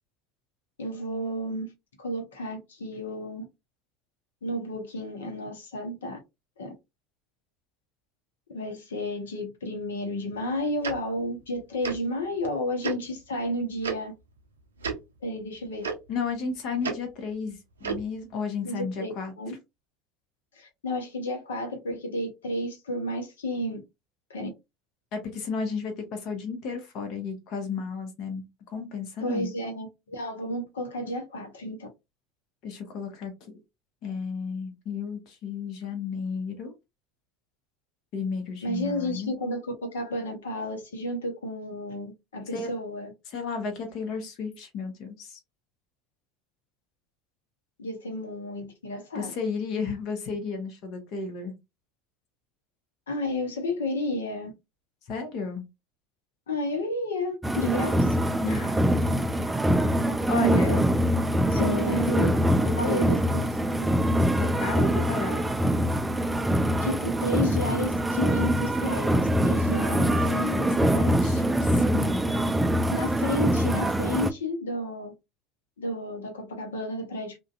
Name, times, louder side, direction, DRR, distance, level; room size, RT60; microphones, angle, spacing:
voice 1, 0.8-1.7 2.0-3.4 4.4-6.2 6.6-6.7 8.5-14.1 15.2-15.9 18.6-19.5 20.6-23.8 24.3-24.5 29.2-31.9 38.6-43.1 47.8-49.3 53.1-54.5 56.5-58.2 60.3-60.9 61.5-62.3 62.8-64.0 66.8-70.1 72.9-75.1 75.8-77.4, left 1 dB, 80° left, 0.8 m, -32 dB
Tick-tock, 10.8-10.9 11.8-12.0 12.8-13.0 13.8-13.9 14.8-15.0 15.8-15.9 16.8-16.9 17.8-18.0, right 5 dB, 85° right, 0.4 m, -30 dB
voice 2, 16.1-19.3 25.1-29.5 32.6-33.6 34.0-36.7 38.1-39.3 42.5-42.7 43.3-45.4 49.1-51.5 55.1-55.6 58.4-58.8 60.3-60.8 61.6-62.1 62.6-63.1 64.4-65.4 70.0-72.4, left 5 dB, 55° left, 0.9 m, -33 dB
sound 1, 57.4-74.3, equal, 10° right, 0.3 m, -24 dB
2.5 x 2.2 x 2.4 m
hypercardioid pair, 70°, 0 cm